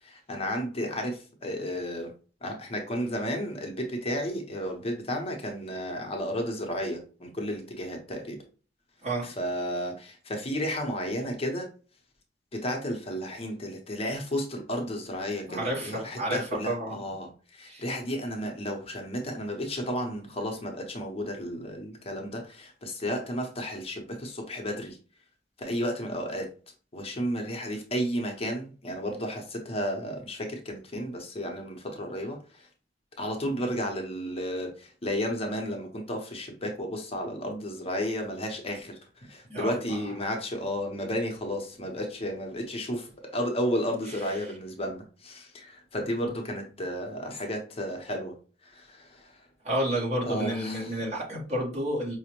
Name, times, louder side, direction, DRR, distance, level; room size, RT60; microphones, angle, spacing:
voice 1, 0.0-2.1 2.4-8.4 9.2-11.7 12.5-25.0 25.6-26.5 26.9-32.7 33.2-48.3 48.6-49.5 50.2-51.0, equal, 35° left, 2 dB, 0.6 m, -33 dB
voice 2, 15.5-17.0 17.7-17.8 39.5-40.0 49.6-52.2, right 1 dB, 40° right, -3 dB, 1.1 m, -30 dB
4.9 x 2.0 x 2.9 m, 0.37 s
head